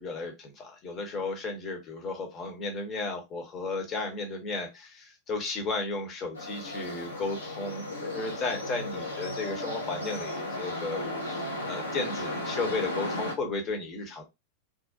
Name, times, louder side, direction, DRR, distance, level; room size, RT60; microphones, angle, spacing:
voice 1, 0.0-14.2, left 3 dB, 30° left, 3 dB, 0.8 m, -34 dB
sound 1, 6.4-13.3, left 1 dB, 75° left, 0.7 m, -35 dB
2.5 x 2.1 x 2.5 m, 0.22 s
figure-of-eight pair, 90°, 0 cm